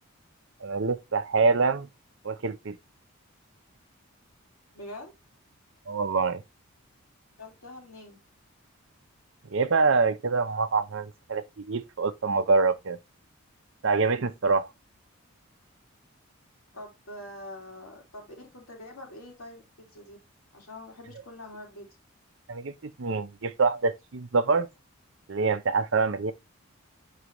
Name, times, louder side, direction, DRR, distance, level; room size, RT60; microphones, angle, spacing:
voice 1, 0.6-1.9 2.2-2.8 5.9-6.4 9.5-13.0 13.8-14.7 22.5-24.7 25.3-26.3, right 4 dB, 55° right, 0.6 m, -25 dB
voice 2, 4.7-5.1 7.4-8.2 16.7-20.2 20.5-21.9, left 1 dB, 75° left, 2.4 m, -44 dB
6.7 x 4.7 x 3.0 m
head